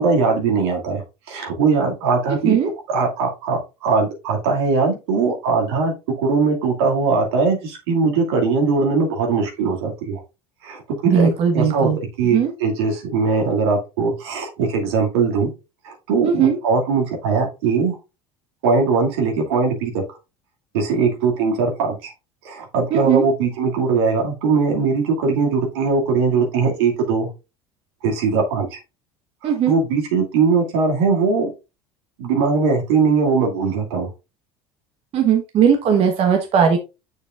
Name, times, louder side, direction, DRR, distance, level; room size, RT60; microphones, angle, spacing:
voice 1, 0.0-2.6 2.9-5.9 6.2-10.2 10.6-11.9 12.2-15.5 15.8-18.0 18.6-20.0 20.7-22.1 22.4-27.3 28.0-28.8 29.4-31.5 32.2-34.1, right 4 dB, 85° right, 1 dB, 2.4 m, -20 dB
voice 2, 2.3-2.7 11.1-12.0 12.3-12.5 16.2-16.6 22.9-23.3 29.4-29.7 35.1-36.8, right 7 dB, 50° right, 4 dB, 1.2 m, -18 dB
6.7 x 6.7 x 2.5 m, 0.28 s
supercardioid pair, 90°, 13 cm